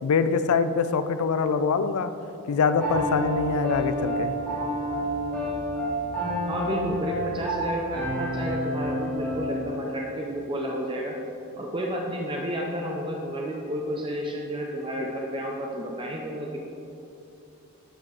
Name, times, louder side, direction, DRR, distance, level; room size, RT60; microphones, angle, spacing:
voice 1, 0.0-2.1 2.5-4.3, left 5 dB, 80° left, 11 dB, 0.4 m, -24 dB
Piano, 2.8-9.6, right 1 dB, 5° left, 1.7 m, -29 dB
voice 2, 6.5-11.2 11.6-16.6, equal, 20° right, -1 dB, 0.5 m, -31 dB
9.0 x 4.4 x 3.9 m, 2.8 s
head